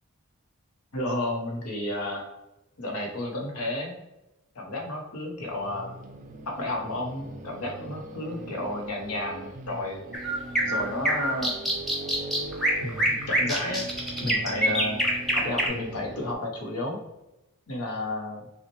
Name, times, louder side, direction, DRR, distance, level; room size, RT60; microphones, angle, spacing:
voice 1, 0.9-2.3 2.8-4.0 4.5-5.9 6.5-10.0 10.6-11.6 12.8-13.9 14.2-15.0 15.3-17.0 17.7-18.5, left 1 dB, 80° left, 1 dB, 0.9 m, -32 dB
sound 1, 5.4-16.3, right 2 dB, 35° right, 0.4 m, -41 dB
sound 2, 10.1-15.7, right 1 dB, ahead, 0.7 m, -25 dB
5.5 x 2.1 x 3.1 m, 0.95 s
head